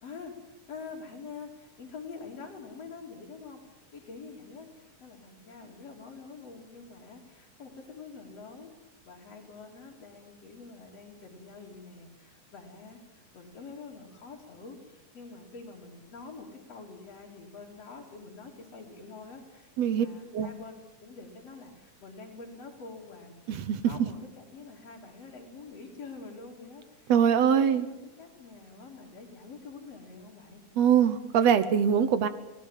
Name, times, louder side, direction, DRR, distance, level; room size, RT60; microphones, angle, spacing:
voice 1, 0.0-8.7 9.1-27.8 28.2-30.6, left 4 dB, 55° left, -4 dB, 3.9 m, -46 dB
voice 2, 23.5-23.8 27.1-27.9 30.8-32.3, right 8 dB, 65° right, 13 dB, 2.0 m, -23 dB
29.5 x 18.5 x 7.5 m, 0.98 s
omnidirectional pair, 3.5 m